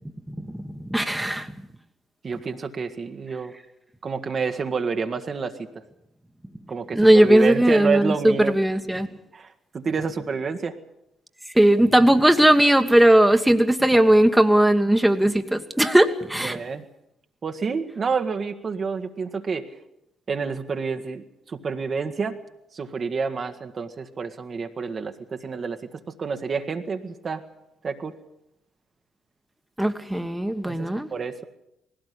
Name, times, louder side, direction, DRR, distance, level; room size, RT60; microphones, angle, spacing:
voice 1, 0.3-1.5 6.9-9.1 11.5-16.6 29.8-31.1, right 1 dB, 5° right, 6 dB, 1.5 m, -18 dB
voice 2, 2.2-3.5 4.0-5.8 6.7-8.6 9.3-9.5 9.7-10.8 16.4-16.8 17.4-19.6 20.3-22.4 22.7-27.4 27.8-28.1 30.7-31.5, right 5 dB, 45° right, 5 dB, 1.5 m, -29 dB
19.5 x 16.5 x 8.5 m, 0.84 s
hypercardioid pair, 45°, 0 cm